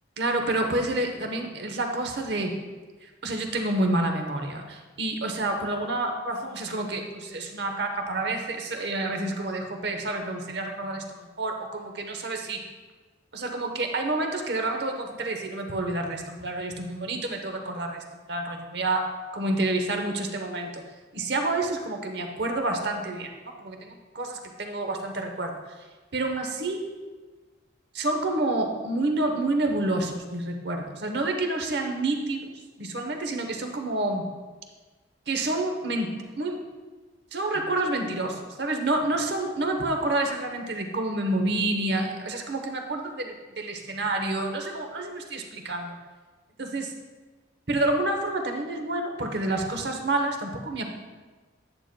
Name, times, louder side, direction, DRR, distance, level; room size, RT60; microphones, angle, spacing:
voice 1, 0.2-2.5 3.2-12.6 13.3-19.1 19.3-20.8 21.1-25.6 26.1-26.8 27.9-32.5 32.8-34.2 35.3-36.6 37.3-46.0 46.6-46.9 47.7-50.9, right 2 dB, 60° right, 4 dB, 0.9 m, -28 dB
9.9 x 8.8 x 2.2 m, 1.3 s
head